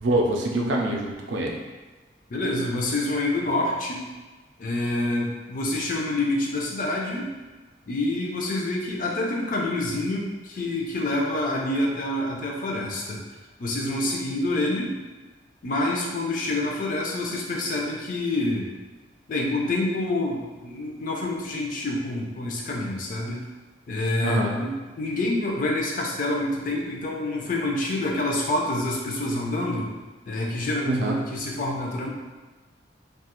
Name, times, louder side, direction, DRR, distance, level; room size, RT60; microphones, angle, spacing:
voice 1, 0.0-1.6 24.2-24.5 30.9-31.2, right 1 dB, 75° right, 0 dB, 0.4 m, -24 dB
voice 2, 2.3-4.1 4.6-7.3 7.9-13.2 13.6-14.9 15.6-18.7 19.3-23.5 23.9-29.9 30.3-32.1, left 2 dB, 45° left, -2 dB, 0.4 m, -27 dB
2.3 x 2.3 x 2.9 m, 1.3 s
head